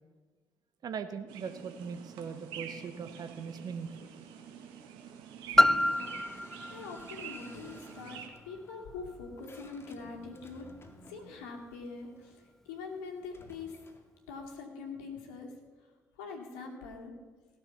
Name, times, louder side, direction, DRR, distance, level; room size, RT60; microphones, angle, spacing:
voice 1, 0.8-3.9, right 6 dB, 55° right, 9 dB, 1.0 m, -40 dB
sound 1, 1.3-8.3, right 8 dB, 75° right, 1.6 m, -47 dB
voice 2, 5.5-10.7 11.1-13.8 14.3-15.5 16.2-17.1, left 4 dB, 80° left, 0 dB, 2.3 m, -44 dB
Piano, 5.6-11.0 11.7-11.8, left 1 dB, 5° left, 0.4 m, -30 dB
sound 2, 5.8-12.4 13.2-14.2, left 2 dB, 30° left, 2.2 m, -57 dB
17.0 x 7.0 x 7.0 m, 1.4 s
hypercardioid pair, 50°, 8 cm